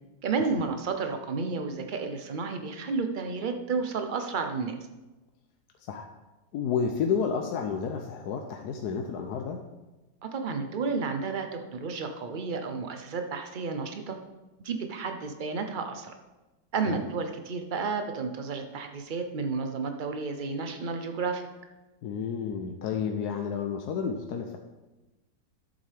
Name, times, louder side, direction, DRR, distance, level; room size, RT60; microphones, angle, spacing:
voice 1, 0.2-4.8 10.2-14.2 14.6-16.1 16.7-21.5, right 4 dB, 60° right, 6 dB, 0.5 m, -31 dB
voice 2, 6.5-9.6 16.9-17.0 22.0-24.6, left 6 dB, 70° left, 4 dB, 1.1 m, -30 dB
12.0 x 7.6 x 3.4 m, 1.1 s
omnidirectional pair, 1.9 m